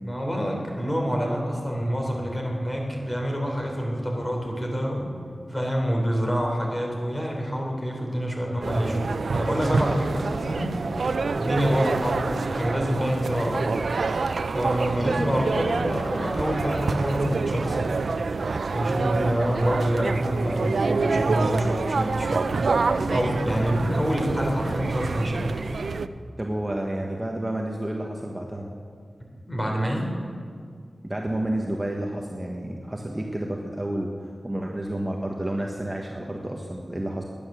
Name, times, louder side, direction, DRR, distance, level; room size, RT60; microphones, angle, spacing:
voice 1, 0.0-5.1 5.5-13.7 14.5-17.9 18.7-25.7 29.5-30.1, equal, 15° left, 0 dB, 3.6 m, -27 dB
sound 1, 8.6-26.1, right 4 dB, 75° right, 0.5 m, -27 dB
voice 2, 26.4-28.7 31.0-34.1 34.4-37.2, right 1 dB, 15° right, 0 dB, 1.3 m, -30 dB
21.0 x 9.8 x 6.9 m, 2.1 s
wide cardioid pair, 105°, 0 cm